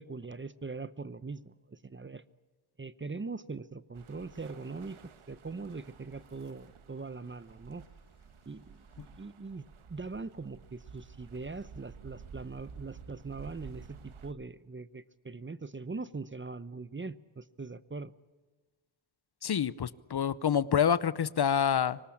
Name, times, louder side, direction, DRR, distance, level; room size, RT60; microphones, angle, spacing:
voice 1, 0.0-2.2 2.8-5.0 5.3-7.8 8.5-18.1, right 4 dB, 25° right, 16 dB, 0.8 m, -41 dB
sound 1, 3.9-14.3, right 6 dB, 75° right, 1.5 m, -52 dB
voice 2, 19.4-22.0, left 8 dB, 50° left, 18 dB, 0.8 m, -27 dB
24.5 x 19.0 x 8.5 m, 1.3 s
wide cardioid pair, 95°, 49 cm